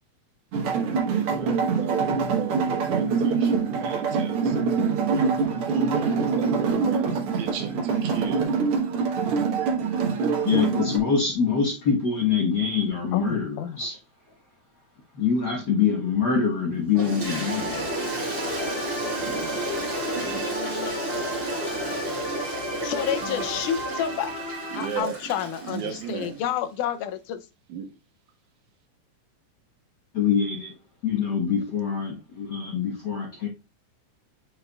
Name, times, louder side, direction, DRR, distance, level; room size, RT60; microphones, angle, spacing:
sound 1, 0.5-11.0, right 5 dB, 55° right, 1.8 m, -24 dB
voice 1, 0.6-4.6 5.6-8.5 19.1-19.7 20.1-20.4 24.7-25.3 25.6-26.4 27.7-27.9, right 7 dB, 80° right, 2.6 m, -36 dB
voice 2, 10.4-14.0 15.1-17.8 30.1-30.7 31.0-33.5, left 6 dB, 50° left, 1.2 m, -24 dB
voice 3, 13.1-13.8 22.8-24.3 24.7-27.4, left 9 dB, 85° left, 2.2 m, -29 dB
Toilet flush, 17.0-26.3, right 1 dB, 35° right, 3.1 m, -31 dB
sound 2, 17.2-25.0, right 1 dB, 10° right, 2.2 m, -35 dB
9.0 x 5.3 x 2.3 m
omnidirectional pair, 3.5 m